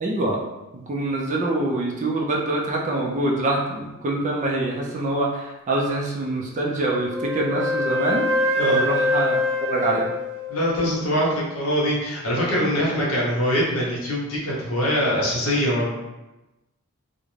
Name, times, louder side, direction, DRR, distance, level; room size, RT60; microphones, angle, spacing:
voice 1, 0.0-0.4 0.7-8.3 8.7-10.1 12.7-13.0, right 2 dB, 35° right, -1 dB, 0.3 m, -25 dB
Wind instrument woodwind instrument, 6.8-11.0, left 2 dB, 80° right, 0.6 m, -25 dB
voice 2, 10.5-15.9, equal, 70° left, -5 dB, 0.9 m, -23 dB
2.4 x 2.1 x 3.1 m, 1.0 s
head